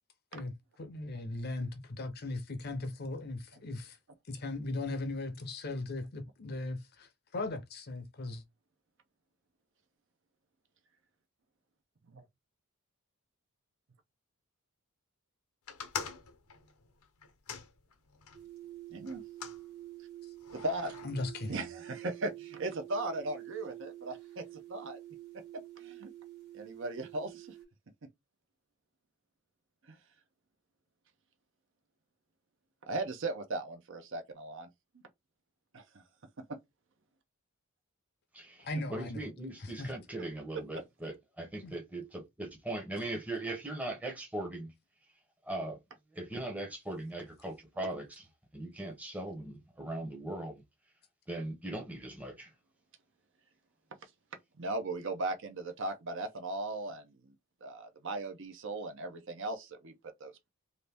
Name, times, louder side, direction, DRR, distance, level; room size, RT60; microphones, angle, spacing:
voice 1, 0.8-4.0 4.3-8.4 21.0-21.7 38.6-39.3 39.6-39.9 41.6-41.7, left 2 dB, 45° left, 0.6 m, -38 dB
sound 1, 15.7-18.4 19.1-19.6 20.4-21.0, left 6 dB, 85° left, 0.7 m, -43 dB
sound 2, 18.3-27.6, right 14 dB, 85° right, 1.5 m, -48 dB
voice 2, 18.9-19.2 20.5-21.0 21.5-24.4 24.7-25.0 25.8-26.1 26.5-27.6 29.9-30.0 32.8-34.7 35.7-36.0 36.5-36.6 54.6-57.3 57.6-60.3, right 2 dB, 55° right, 0.6 m, -37 dB
voice 3, 38.3-44.7 45.4-45.8 46.1-48.3 48.5-50.6 51.3-52.5, right 1 dB, 5° right, 0.8 m, -39 dB
2.7 x 2.6 x 3.4 m
head